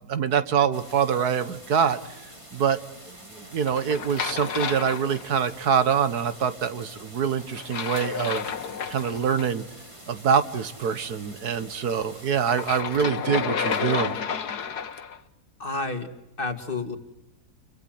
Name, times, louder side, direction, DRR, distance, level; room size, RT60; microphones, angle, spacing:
voice 1, 0.0-2.0 2.5-2.8 3.1-8.5 8.9-9.6 10.1-14.2, right 7 dB, 80° right, 12 dB, 1.9 m, -25 dB
sound 1, 0.7-12.8, right 1 dB, 20° right, 3.2 m, -47 dB
sound 2, 3.7-5.6 7.5-9.5 12.5-15.2, left 7 dB, 85° left, 1.8 m, -31 dB
voice 2, 15.6-16.1 16.4-17.0, left 3 dB, 35° left, 6 dB, 2.5 m, -30 dB
30.0 x 24.0 x 7.8 m, 0.89 s
omnidirectional pair, 1.6 m